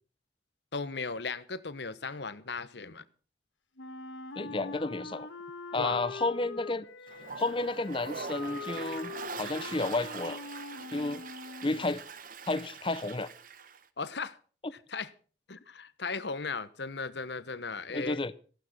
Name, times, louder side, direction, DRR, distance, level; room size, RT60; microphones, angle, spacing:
voice 1, 0.7-3.0 5.7-6.0 14.0-14.4 14.9-15.1 15.5-18.2, left 4 dB, 65° left, 1.0 m, -36 dB
Wind instrument woodwind instrument, 3.8-11.9, left 3 dB, 80° left, 1.4 m, -43 dB
voice 2, 4.3-5.3 5.7-6.9 7.4-10.4 10.9-11.2 11.6-12.0 12.5-13.3 14.6-14.7 17.9-18.3, left 2 dB, 25° left, 0.6 m, -31 dB
Toilet flush, 7.1-13.8, right 5 dB, 45° right, 0.9 m, -43 dB
15.0 x 11.5 x 6.0 m
head